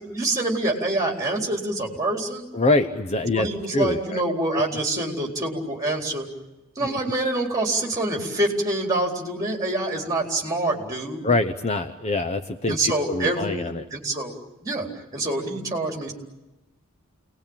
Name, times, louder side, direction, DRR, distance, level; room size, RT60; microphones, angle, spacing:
voice 1, 0.0-2.4 3.3-6.3 6.8-11.3 12.7-14.4 14.6-16.1, right 2 dB, 15° right, 0 dB, 4.2 m, -26 dB
voice 2, 2.5-4.2 4.5-4.6 6.8-6.9 11.2-13.8, left 2 dB, 30° left, 7 dB, 0.8 m, -24 dB
29.0 x 20.0 x 8.9 m, 1.0 s
head